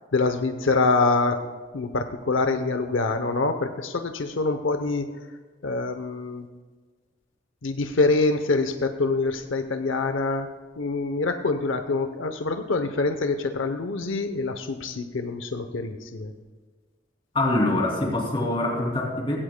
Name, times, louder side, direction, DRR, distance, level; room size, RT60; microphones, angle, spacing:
voice 1, 0.1-1.4 1.7-5.1 5.6-6.4 7.6-10.5 10.8-16.3, left 3 dB, 90° left, 7 dB, 0.7 m, -25 dB
voice 2, 17.3-19.4, left 2 dB, 30° left, -1 dB, 2.7 m, -24 dB
16.5 x 16.0 x 2.2 m, 1.4 s
head